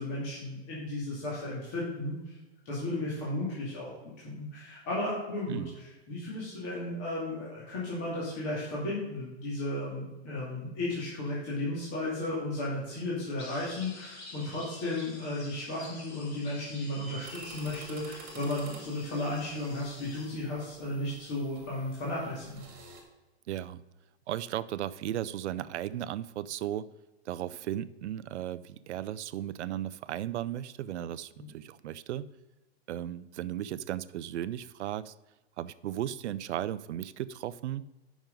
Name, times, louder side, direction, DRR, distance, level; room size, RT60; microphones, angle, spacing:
voice 1, 0.0-2.3 2.6-22.6 31.4-31.5, left 1 dB, 35° left, -7 dB, 2.5 m, -34 dB
sound 1, 13.4-20.3, left 2 dB, 75° left, 3.1 m, -48 dB
sound 2, 17.2-23.0, right 4 dB, 25° right, 2.1 m, -51 dB
voice 2, 23.5-23.8 24.3-26.9 27.3-32.3 32.9-35.1 35.6-37.9, right 11 dB, 80° right, 15 dB, 0.6 m, -35 dB
9.0 x 6.1 x 5.2 m, 1.1 s
hypercardioid pair, 160°, 34 cm